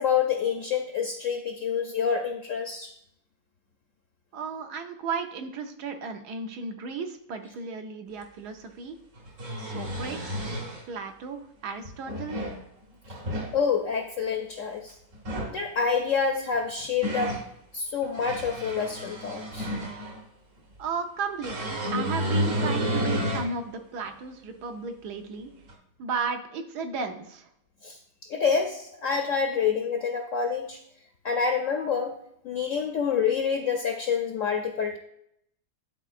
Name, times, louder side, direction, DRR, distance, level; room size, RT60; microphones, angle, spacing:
voice 1, 0.0-2.9 13.5-14.9 15.5-17.4 17.7-19.7 27.8-28.0 28.3-30.8 31.2-32.1 32.4-35.0, left 6 dB, 60° left, 3 dB, 0.8 m, -27 dB
voice 2, 4.3-9.0 9.6-10.4 10.9-12.4 20.8-25.5 26.0-27.5, right 5 dB, 70° right, 6 dB, 1.3 m, -34 dB
sound 1, 8.2-8.3 9.2-10.8 11.8-12.6 13.0-13.5 15.1-15.6 16.5-17.5 18.0-20.2 21.4-23.5 24.1-24.2 25.7-25.8, equal, 50° right, 1.4 m, -31 dB
11.0 x 4.0 x 2.5 m, 0.75 s
omnidirectional pair, 1.9 m